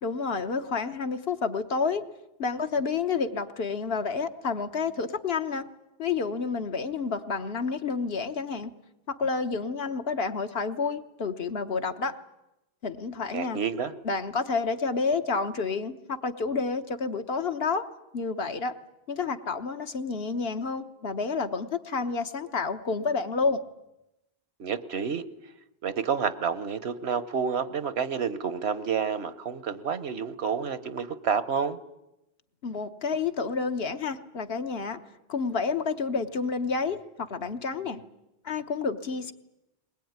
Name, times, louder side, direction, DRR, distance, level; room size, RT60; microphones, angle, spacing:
voice 1, 0.0-2.1 2.4-5.7 6.0-8.7 9.1-12.2 12.8-13.6 14.0-17.9 18.1-18.7 19.1-23.6 32.6-35.0 35.3-38.0 38.4-39.3, left 4 dB, 70° left, 8 dB, 1.4 m, -29 dB
voice 2, 13.3-13.9 24.6-25.2 25.8-31.8, right 6 dB, 80° right, 14 dB, 1.3 m, -29 dB
21.0 x 21.0 x 9.5 m, 0.92 s
omnidirectional pair, 1.1 m